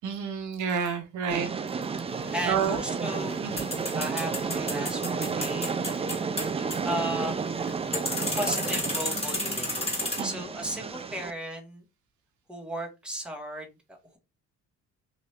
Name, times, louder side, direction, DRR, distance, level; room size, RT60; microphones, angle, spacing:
voice 1, 0.0-1.5 2.4-2.8 3.4-3.7 10.2-10.4, right 7 dB, 75° right, 7 dB, 0.7 m, -29 dB
Train, 1.3-11.3, right 5 dB, 20° right, 0.3 m, -32 dB
sound 1, 2.1-10.2, left 2 dB, 20° left, 1.6 m, -34 dB
voice 2, 2.3-3.4 3.9-6.0 6.8-7.8 8.3-11.8 12.5-14.2, equal, 5° right, 0 dB, 1.3 m, -35 dB
2.8 x 2.6 x 3.2 m, 0.25 s
cardioid pair, 90°, 30 cm